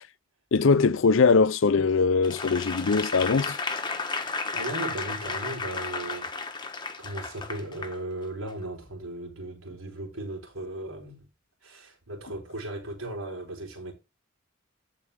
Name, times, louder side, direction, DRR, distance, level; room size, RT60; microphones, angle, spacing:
voice 1, 0.5-3.6, left 4 dB, 70° left, 0.5 m, -21 dB
Applause / Crowd, 2.2-8.0 8.5-8.6, left 4 dB, 20° left, 1.0 m, -33 dB
voice 2, 4.5-11.3 11.6-13.9, right 1 dB, 80° right, 4.1 m, -37 dB
14.5 x 4.8 x 3.5 m
head